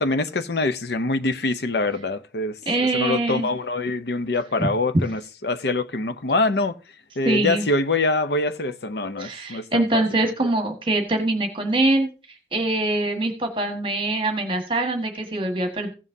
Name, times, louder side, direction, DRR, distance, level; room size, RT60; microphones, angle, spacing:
voice 1, 0.0-2.5 2.9-6.8 7.2-10.0, left 2 dB, 65° left, 0.7 m, -24 dB
voice 2, 2.7-3.5 4.6-4.7 7.2-7.7 9.2-12.1 12.5-15.9, right 2 dB, 30° right, 1.5 m, -23 dB
16.0 x 7.3 x 2.7 m
head